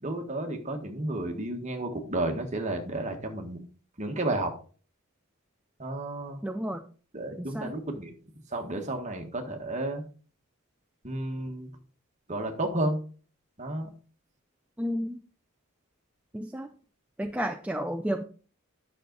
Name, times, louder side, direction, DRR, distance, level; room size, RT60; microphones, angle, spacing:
voice 1, 0.0-3.6 4.0-4.5 5.8-6.4 7.1-8.1 8.5-10.0 11.0-11.7 12.3-13.0 13.6-13.9, right 1 dB, 30° right, 4 dB, 1.5 m, -32 dB
voice 2, 6.4-6.9 7.4-7.7 14.8-15.2 16.3-16.7 17.2-18.2, equal, 5° right, 5 dB, 0.4 m, -31 dB
9.9 x 6.4 x 3.9 m, 0.40 s
head